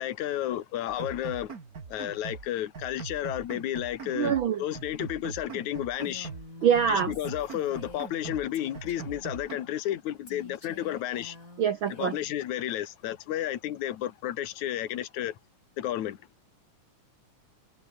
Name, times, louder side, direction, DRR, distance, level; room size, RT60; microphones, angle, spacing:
voice 1, 0.0-1.6 1.9-6.3 6.9-11.4 11.9-15.4 15.8-16.2, left 12 dB, 65° left, 2.8 m, -32 dB
sound 1, 0.9-2.5 2.7-4.5 4.7-6.5 6.7-8.5 8.7-9.6, right 5 dB, 30° right, 2.1 m, -42 dB
voice 2, 4.1-4.6 6.6-7.1 11.6-12.2, right 8 dB, 80° right, 1.1 m, -24 dB
Female speech woman speaking, 6.0-8.3 8.5-9.3 10.3-12.4, left 2 dB, 25° left, 6.5 m, -49 dB
omnidirectional pair, 3.7 m